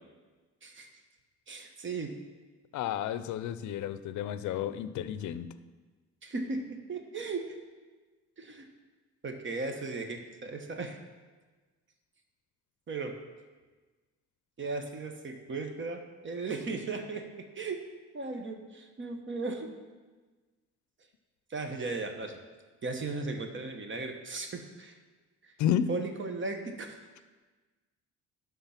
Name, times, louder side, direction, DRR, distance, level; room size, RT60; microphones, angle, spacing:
voice 1, 1.5-2.2 6.2-7.6 8.4-8.7 9.2-11.0 12.9-13.2 14.6-17.8 18.1-19.7 21.5-22.4 22.8-25.0 25.4-25.5 25.9-27.0, right 3 dB, 40° right, 5 dB, 1.1 m, -36 dB
voice 2, 2.7-5.5 25.6-25.9, left 10 dB, 75° left, 13 dB, 0.5 m, -31 dB
11.0 x 3.7 x 5.8 m, 1.3 s
cardioid pair, 90°, 30 cm